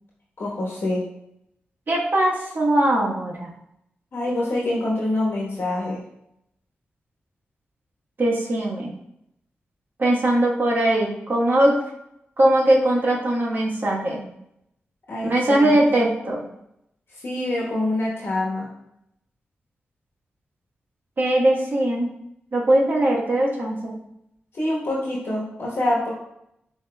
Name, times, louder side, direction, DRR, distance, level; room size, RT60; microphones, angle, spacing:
voice 1, 0.4-1.0 4.1-6.0 15.1-15.9 17.2-18.7 24.5-26.1, left 1 dB, 70° left, -5 dB, 1.1 m, -25 dB
voice 2, 1.9-3.5 8.2-8.9 10.0-11.8 12.4-14.2 15.2-16.4 21.2-22.1 22.5-23.9, right 1 dB, 55° right, -3 dB, 1.2 m, -20 dB
7.5 x 2.9 x 2.2 m, 0.79 s
cardioid pair, 55°, 4 cm